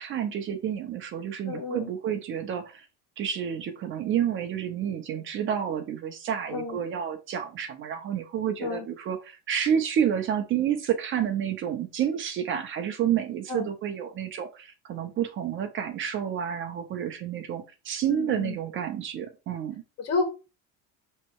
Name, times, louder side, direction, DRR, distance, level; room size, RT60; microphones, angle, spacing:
voice 1, 0.0-2.9 3.2-19.8, right 9 dB, 40° right, 0.9 m, -29 dB
voice 2, 1.5-1.9 6.5-6.8 8.6-8.9 13.5-13.7 18.1-18.6 20.0-20.2, left 4 dB, 50° left, 1.7 m, -30 dB
6.5 x 3.2 x 4.6 m
cardioid pair, 155°, 32 cm